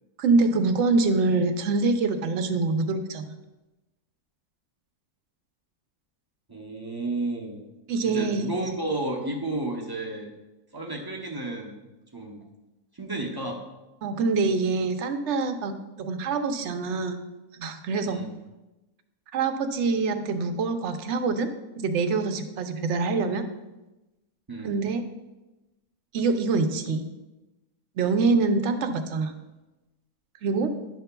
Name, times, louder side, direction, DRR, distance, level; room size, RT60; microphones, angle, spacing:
voice 1, 0.2-3.3 7.9-8.5 14.0-17.2 17.5-18.2 19.3-23.4 24.6-25.0 26.1-27.0 28.0-29.3 30.4-30.7, right 3 dB, 65° right, 7 dB, 0.8 m, -25 dB
voice 2, 6.5-7.7 8.0-10.3 10.7-11.8 12.1-12.5 12.9-13.6 18.0-18.3 24.5-24.8, right 2 dB, 30° right, 0 dB, 0.4 m, -32 dB
10.5 x 6.7 x 2.2 m, 1.0 s
omnidirectional pair, 1.5 m